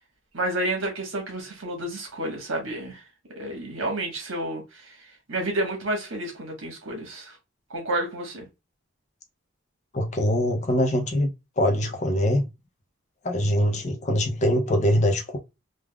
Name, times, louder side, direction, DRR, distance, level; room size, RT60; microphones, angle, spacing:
voice 1, 0.3-3.0 3.3-7.4 7.7-8.5, right 1 dB, 65° right, 1.2 m, -30 dB
voice 2, 9.9-11.3 11.6-12.5 13.2-15.4, equal, 35° left, 0.5 m, -23 dB
3.3 x 2.4 x 2.2 m
head